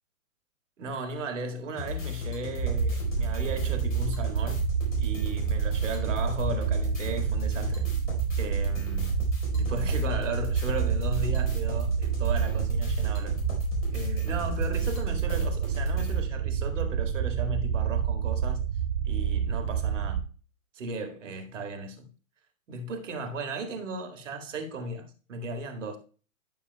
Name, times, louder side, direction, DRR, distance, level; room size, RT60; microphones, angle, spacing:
voice 1, 0.8-4.6 5.0-7.9 8.4-9.2 9.5-13.4 13.9-18.6 19.0-20.2 20.7-22.1 22.7-26.0, right 3 dB, 60° right, 2.0 m, -36 dB
sound 1, 1.8-16.2, left 5 dB, 70° left, 4.3 m, -34 dB
sound 2, 2.6-20.2, right 8 dB, 40° right, 0.6 m, -28 dB
12.5 x 6.8 x 2.2 m
figure-of-eight pair, 115°, 42 cm